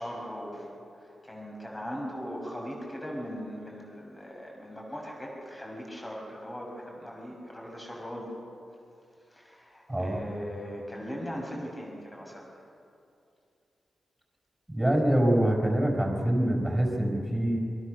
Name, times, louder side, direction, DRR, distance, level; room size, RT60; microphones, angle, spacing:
voice 1, 0.0-8.3 9.3-12.6, equal, 15° left, -1 dB, 6.3 m, -39 dB
voice 2, 14.7-17.6, right 1 dB, 10° right, 0 dB, 5.9 m, -25 dB
29.0 x 24.5 x 6.7 m, 2.6 s
wide cardioid pair, 120°, 0 cm